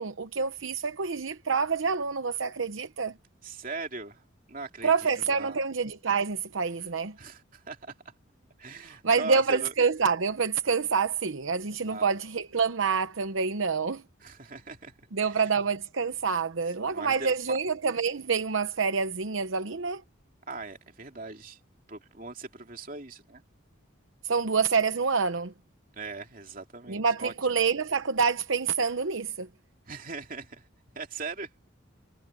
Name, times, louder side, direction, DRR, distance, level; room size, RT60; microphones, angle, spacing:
voice 1, 0.0-3.1 4.8-7.2 9.0-14.0 15.1-20.0 24.2-25.5 26.9-29.5, right 5 dB, 75° right, 0.9 m, -27 dB
voice 2, 3.4-4.2 4.5-5.7 7.2-7.9 8.6-9.7 11.8-12.1 14.2-14.9 15.2-15.5 16.8-17.6 20.5-21.6 21.9-23.4 26.0-27.3 29.9-30.6 30.9-31.5, right 3 dB, 40° right, 3.0 m, -40 dB
head